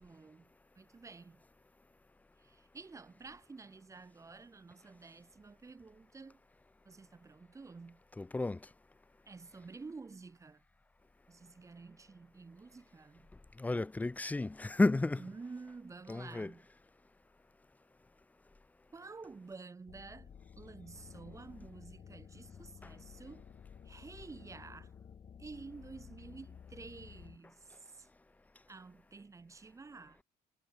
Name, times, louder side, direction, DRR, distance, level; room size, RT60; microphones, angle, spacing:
voice 1, 0.0-1.4 2.4-6.4 6.8-8.0 9.3-10.6 11.3-13.3 15.2-16.7 18.9-23.4 23.8-24.9 25.4-28.1 28.7-30.2, right 4 dB, 20° right, 0.7 m, -51 dB
voice 2, 8.2-8.6 13.6-15.2 16.1-16.5, left 2 dB, 10° left, 0.3 m, -32 dB
sound 1, 19.9-27.4, left 7 dB, 35° left, 1.7 m, -53 dB
cardioid pair, 110°, 17 cm